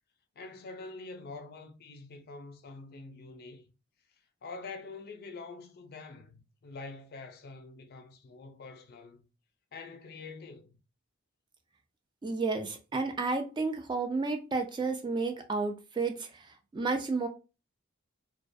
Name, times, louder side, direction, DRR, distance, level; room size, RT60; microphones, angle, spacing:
voice 1, 0.4-3.6 4.4-9.3 9.7-10.8, left 3 dB, 50° left, 0.5 m, -46 dB
voice 2, 12.2-17.3, right 3 dB, 20° right, 0.3 m, -32 dB
2.3 x 2.2 x 2.5 m
head